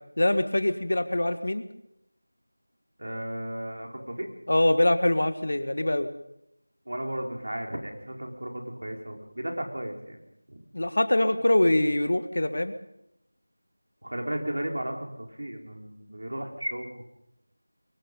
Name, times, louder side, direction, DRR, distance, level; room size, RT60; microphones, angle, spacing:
voice 1, 0.2-1.6 4.5-6.1 10.7-12.7, left 1 dB, 55° left, 10 dB, 1.7 m, -23 dB
voice 2, 3.0-4.3 6.9-10.2 10.5-10.6 14.0-17.0, right 1 dB, 65° right, 2 dB, 4.8 m, -34 dB
23.0 x 21.5 x 5.5 m, 0.81 s
figure-of-eight pair, 175°, 0 cm